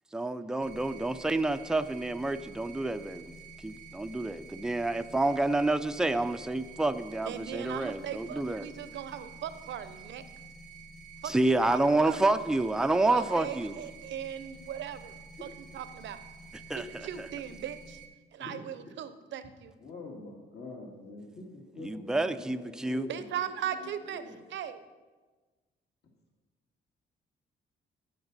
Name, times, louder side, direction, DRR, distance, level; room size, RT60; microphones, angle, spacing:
voice 1, 0.1-3.2 3.6-8.7 11.3-13.7 16.7-16.8 21.8-23.1, right 2 dB, 5° right, 9 dB, 0.4 m, -28 dB
sound 1, 0.6-18.1, right 3 dB, 35° left, 1.7 m, -49 dB
voice 2, 7.3-10.3 11.2-12.2 13.1-16.2 16.7-18.0 18.3-19.7 23.1-24.8, right 9 dB, 70° right, 12 dB, 0.7 m, -39 dB
voice 3, 19.8-23.1 23.4-24.3, left 2 dB, 55° left, 0 dB, 2.0 m, -45 dB
14.5 x 5.9 x 4.0 m, 1.3 s
cardioid pair, 90°, 20 cm